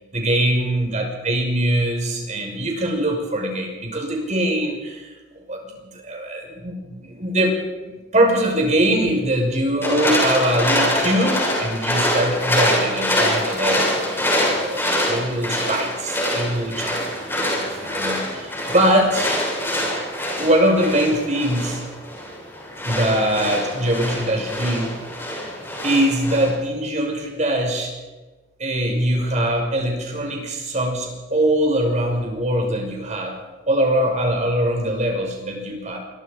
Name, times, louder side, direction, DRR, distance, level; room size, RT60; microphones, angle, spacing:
voice 1, 0.1-5.1 5.5-5.6 5.9-19.3 20.4-21.8 22.9-24.9 25.8-27.9 28.6-33.4 33.7-36.0, right 1 dB, 40° right, 2 dB, 5.8 m, -22 dB
sound 1, 9.8-26.5, left 1 dB, 15° left, 6.9 m, -24 dB
27.0 x 23.0 x 5.2 m, 1.2 s
head